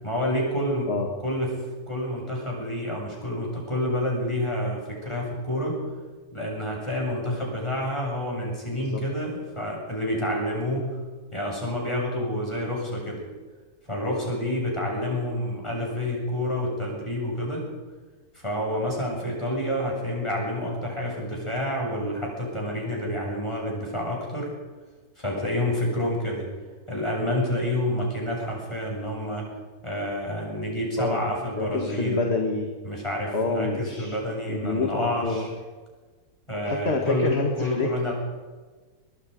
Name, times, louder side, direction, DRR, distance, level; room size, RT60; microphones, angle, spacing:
voice 1, 0.0-0.9 1.2-1.6 1.9-5.8 6.3-11.0 11.3-13.2 13.9-17.7 18.3-24.5 25.2-26.5 26.9-29.5 29.8-32.3 32.8-35.5 36.5-38.1, left 1 dB, 20° left, -2 dB, 7.8 m, -28 dB
voice 2, 31.5-32.7 33.3-34.2 34.5-35.5 36.7-37.9, left 3 dB, 40° left, 2 dB, 2.1 m, -27 dB
23.0 x 21.5 x 5.3 m, 1.4 s
omnidirectional pair, 1.7 m